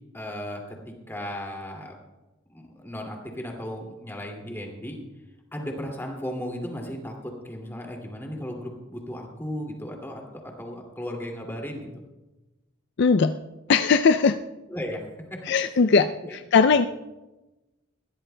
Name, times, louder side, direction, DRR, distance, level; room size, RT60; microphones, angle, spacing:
voice 1, 0.1-1.9 2.5-5.0 5.5-11.9 14.7-15.0 15.7-15.9 16.2-16.3, equal, 10° left, 0 dB, 2.3 m, -35 dB
voice 2, 13.0-13.4 13.7-14.4 15.5-16.9, left 5 dB, 55° left, 8 dB, 0.4 m, -19 dB
21.0 x 16.0 x 2.2 m, 1.1 s
head